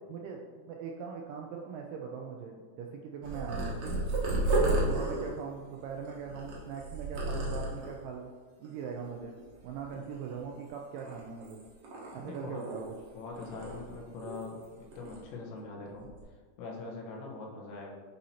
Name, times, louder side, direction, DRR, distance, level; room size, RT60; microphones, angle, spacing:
voice 1, 0.1-4.1 4.6-8.3 8.6-9.4 9.6-11.6 12.1-12.9, right 6 dB, 85° right, 1 dB, 1.9 m, -41 dB
Purr, 3.2-8.1 8.6-9.1 9.4-10.6 11.0-13.1 13.3-14.6 14.9-15.2 15.9-16.2, right 2 dB, 60° right, 2.0 m, -33 dB
voice 2, 12.2-12.6 13.2-16.1 16.6-17.9, left 3 dB, 90° left, -1 dB, 3.0 m, -42 dB
9.2 x 4.1 x 2.8 m, 1.5 s
omnidirectional pair, 4.4 m